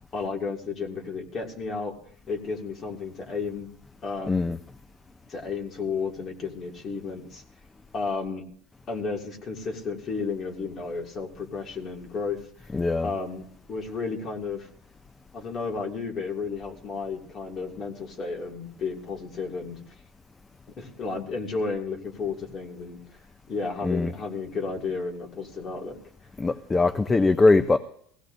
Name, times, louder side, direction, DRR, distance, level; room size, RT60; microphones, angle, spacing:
voice 1, 0.0-1.9 2.3-3.7 4.0-4.4 5.3-7.4 7.9-8.5 8.9-12.7 13.0-14.7 15.3-19.8 20.8-23.2 23.5-26.0, left 4 dB, 30° left, 2.2 m, -33 dB
voice 2, 4.3-4.6 12.7-13.1 23.8-24.1 26.4-27.8, left 3 dB, 10° left, 0.4 m, -21 dB
22.5 x 16.5 x 2.6 m
cardioid pair, 150°, 0 cm